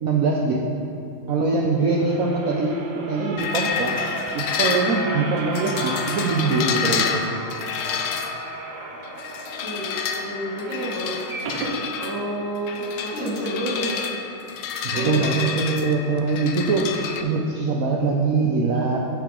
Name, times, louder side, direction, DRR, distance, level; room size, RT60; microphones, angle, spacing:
voice 1, 0.0-0.6 1.3-7.2 14.8-16.9 17.2-19.0, right 4 dB, 85° right, -1 dB, 0.7 m, -23 dB
sound 1, 1.6-11.8 12.3-12.4 12.6-12.7, right 3 dB, 65° right, 1.3 m, -35 dB
sound 2, 3.4-17.2, left 7 dB, 75° left, 1.1 m, -29 dB
voice 2, 9.6-11.1 11.9-14.0 14.9-15.5, right 1 dB, 10° right, -13 dB, 1.9 m, -29 dB
9.6 x 6.8 x 3.7 m, 2.8 s
omnidirectional pair, 2.3 m